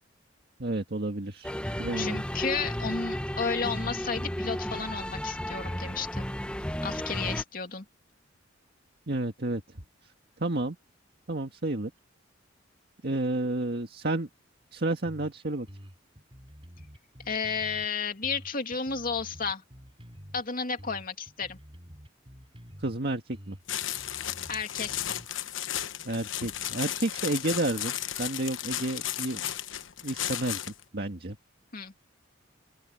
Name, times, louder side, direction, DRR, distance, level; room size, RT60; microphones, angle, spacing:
voice 1, 0.6-1.5 1.8-2.2 9.1-9.6 10.4-10.8 11.3-11.9 13.0-14.3 14.7-15.7 22.8-23.6 26.1-27.9 28.2-29.4 30.0-30.6 30.9-31.4, right 2 dB, 55° right, 1.8 m, -30 dB
sound 1, 1.4-7.4, equal, 5° left, 1.4 m, -33 dB
voice 2, 2.0-6.3 6.8-7.8 17.2-19.6 20.3-21.6 24.5-25.0 31.7-31.9, left 5 dB, 45° left, 2.6 m, -32 dB
sound 2, 15.0-15.3 15.7-17.9 18.2-20.4 20.8-23.0 23.3-25.3, equal, 30° right, 5.0 m, -48 dB
sound 3, 23.7-30.8, left 11 dB, 80° left, 1.1 m, -34 dB
open air
head